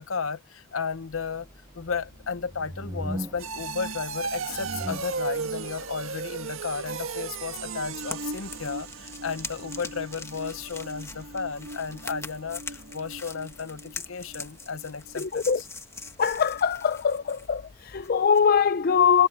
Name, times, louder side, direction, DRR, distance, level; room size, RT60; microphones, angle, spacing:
voice 1, 0.0-1.5 1.7-15.7, left 5 dB, 80° left, 0.8 m, -34 dB
sound 1, 1.1-13.4, equal, 20° right, 7.5 m, -44 dB
sound 2, 1.8-14.5 14.8-15.2 15.6-15.7, right 4 dB, 90° right, 1.6 m, -37 dB
sound 3, 7.5-18.5, left 3 dB, 15° left, 1.6 m, -43 dB
voice 2, 15.2-15.6 16.2-19.3, left 6 dB, 45° left, 0.5 m, -22 dB
head